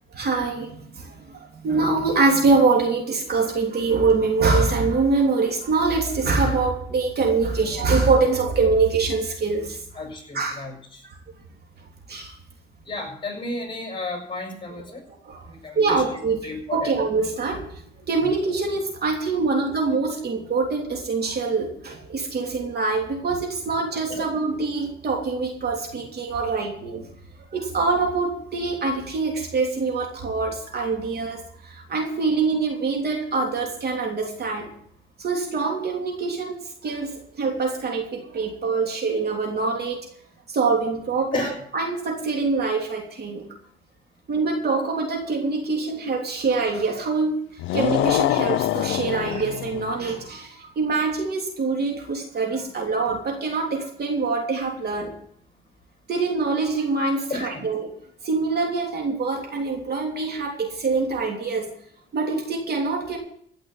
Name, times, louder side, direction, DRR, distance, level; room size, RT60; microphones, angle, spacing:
voice 1, 0.1-9.8 10.3-10.6 12.1-12.4 15.0-15.5 15.7-27.1 27.5-34.7 35.2-40.0 40.5-43.4 44.3-47.4 47.7-55.1 56.1-57.9 58.2-61.7 62.1-63.2, right 4 dB, 55° right, 1 dB, 3.2 m, -24 dB
voice 2, 9.9-11.0 12.8-15.0 15.5-16.9 24.1-24.2 41.3-41.5 57.3-57.7, left 2 dB, 25° left, 2 dB, 6.1 m, -32 dB
sound 1, 47.6-50.0, left 15 dB, 80° left, 0.5 m, -24 dB
16.0 x 6.0 x 9.1 m, 0.65 s
cardioid pair, 90°, 20 cm